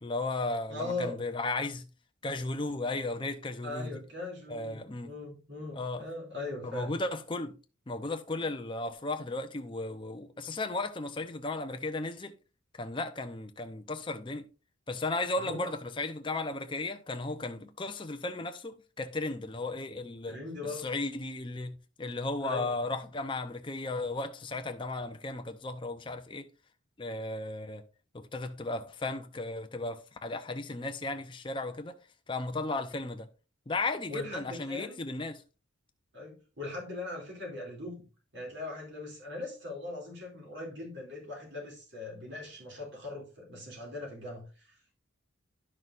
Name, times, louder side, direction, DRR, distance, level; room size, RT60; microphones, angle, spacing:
voice 1, 0.0-1.9 2.2-3.9 4.5-5.1 5.7-6.1 6.6-7.6 7.9-12.3 12.8-14.4 14.9-26.5 27.0-27.8 28.1-32.0 32.3-33.3 33.7-35.4, left 2 dB, 25° left, 0.6 m, -35 dB
voice 2, 0.7-1.2 3.6-6.9 15.4-15.7 20.3-20.9 22.4-22.7 34.1-35.0 36.1-38.0 38.3-45.0, left 2 dB, 55° right, 2.7 m, -40 dB
11.0 x 6.1 x 2.5 m
head